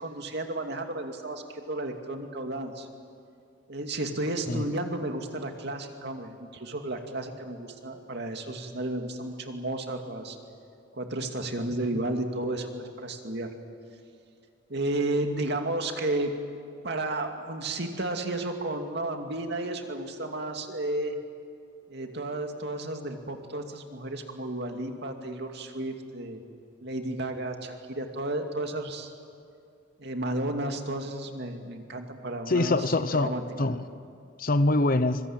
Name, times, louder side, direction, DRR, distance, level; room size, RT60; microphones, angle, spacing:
voice 1, 0.0-2.9 3.7-10.4 10.9-13.5 14.7-16.3 16.8-21.2 21.9-26.4 26.8-29.1 30.0-32.7 33.1-33.4, right 2 dB, 60° right, 4 dB, 2.5 m, -32 dB
voice 2, 32.5-33.3 33.6-33.8 34.4-35.2, left 2 dB, 50° left, 12 dB, 0.9 m, -24 dB
25.0 x 22.5 x 9.0 m, 2.4 s
head